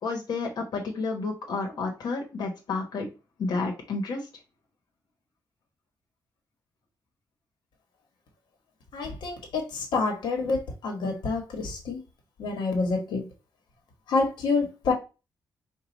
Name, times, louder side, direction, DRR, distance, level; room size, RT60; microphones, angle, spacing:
voice 1, 0.0-3.1 3.4-4.2, left 3 dB, 65° left, 1.3 m, -30 dB
voice 2, 8.9-12.0 12.4-13.2 14.1-14.9, left 3 dB, 90° left, 1.5 m, -27 dB
4.7 x 2.6 x 4.0 m
wide cardioid pair, 170°, 8 cm